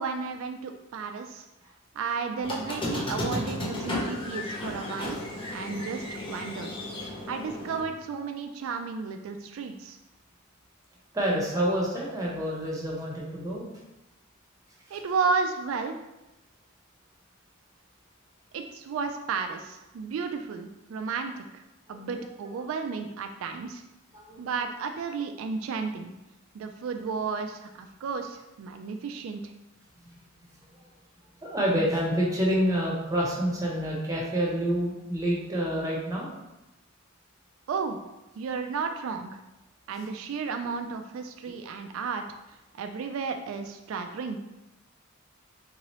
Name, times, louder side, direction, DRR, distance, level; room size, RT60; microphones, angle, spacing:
voice 1, 0.0-1.5 1.9-5.2 5.5-6.7 7.3-10.0 14.9-16.0 18.5-21.6 21.9-23.8 24.4-26.1 26.5-29.5 37.7-38.0 38.4-39.4 39.9-42.2 42.7-44.4, right 5 dB, 80° right, 6 dB, 0.3 m, -33 dB
Squeak, 2.4-7.8, left 1 dB, 25° left, 0.6 m, -34 dB
voice 2, 11.1-13.7 14.9-15.0 21.9-22.5 24.1-24.5 26.9-27.0 30.0-30.1 31.4-36.3, equal, 15° right, -4 dB, 0.8 m, -28 dB
3.6 x 2.9 x 3.0 m, 0.98 s
head